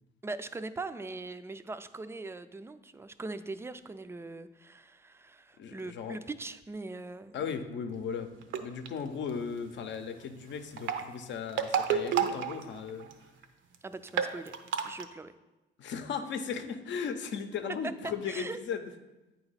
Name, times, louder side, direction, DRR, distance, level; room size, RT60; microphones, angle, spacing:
voice 1, 0.2-7.4 13.8-14.5 14.8-15.3 18.3-18.6, right 3 dB, 15° right, 11 dB, 0.4 m, -41 dB
voice 2, 5.6-6.2 7.3-13.1 15.8-18.8, left 6 dB, 70° left, 8 dB, 0.7 m, -37 dB
sound 1, 8.4-8.9 10.6-13.1 13.4-13.5 13.7-13.8 14.1-15.0, right 8 dB, 75° right, 0.6 m, -30 dB
8.7 x 2.9 x 5.6 m, 1.1 s
cardioid pair, 90°, 20 cm